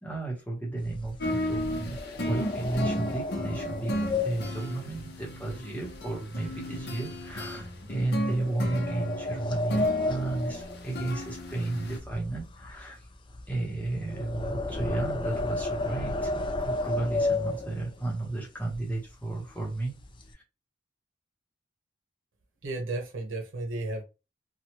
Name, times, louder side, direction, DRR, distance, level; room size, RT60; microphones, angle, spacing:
voice 1, 0.0-3.9 4.2-13.1 13.5-20.0 20.3-20.4, right 2 dB, 10° left, 1.0 m, -33 dB
sound 1, 0.8-6.1 6.4-6.8 7.3-7.4 8.2-11.6 11.8-18.1 18.7-18.8 19.1-19.3 19.7-20.3, left 2 dB, 25° left, 0.4 m, -33 dB
sound 2, 1.2-12.0, equal, 55° left, 0.8 m, -35 dB
voice 2, 22.6-24.0, right 2 dB, 80° right, 1.0 m, -33 dB
2.9 x 2.4 x 3.0 m
head